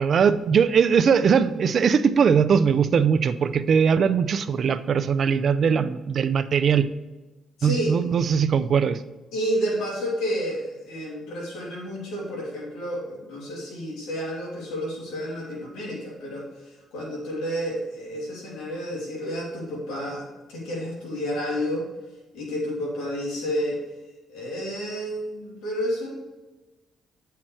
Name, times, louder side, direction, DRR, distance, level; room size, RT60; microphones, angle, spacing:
voice 1, 0.0-6.9 7.6-9.0, right 6 dB, 55° right, 11 dB, 0.6 m, -20 dB
voice 2, 7.6-8.0 9.3-16.4 16.9-21.8 22.3-23.8 24.3-26.1, equal, 90° left, -4 dB, 3.0 m, -30 dB
8.8 x 5.8 x 4.7 m, 1.1 s
cardioid pair, 90°, 0 cm